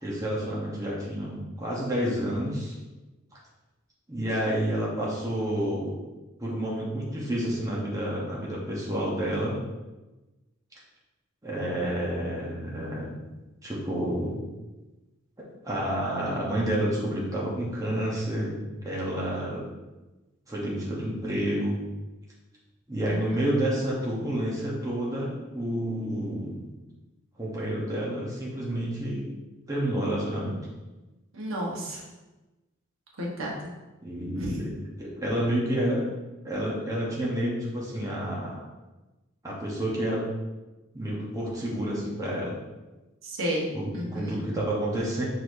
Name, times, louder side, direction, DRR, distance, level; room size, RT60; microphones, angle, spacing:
voice 1, 0.0-2.7 4.1-6.0 6.4-9.6 11.4-13.2 13.6-14.4 15.6-19.6 20.5-21.8 22.9-26.7 27.4-29.3 29.7-30.6 34.0-34.7 35.0-36.0 36.4-38.6 39.4-40.2 40.9-42.6 43.7-45.2, right 1 dB, 15° right, -5 dB, 1.0 m, -29 dB
voice 2, 23.1-23.4 31.3-32.0 33.2-33.7 34.4-34.6 43.2-43.7 43.9-44.4, equal, 90° right, -3 dB, 1.1 m, -32 dB
4.8 x 4.0 x 2.7 m, 1.1 s
head